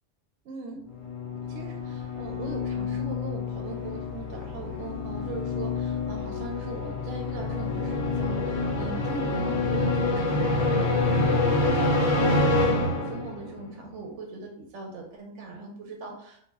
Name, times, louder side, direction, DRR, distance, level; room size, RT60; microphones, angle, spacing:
voice 1, 0.4-0.9 1.5-16.4, right 3 dB, 75° right, 1 dB, 0.8 m, -39 dB
sound 1, 0.9-13.5, left 2 dB, 85° left, 1.0 m, -27 dB
2.2 x 2.1 x 3.4 m, 0.66 s
omnidirectional pair, 1.3 m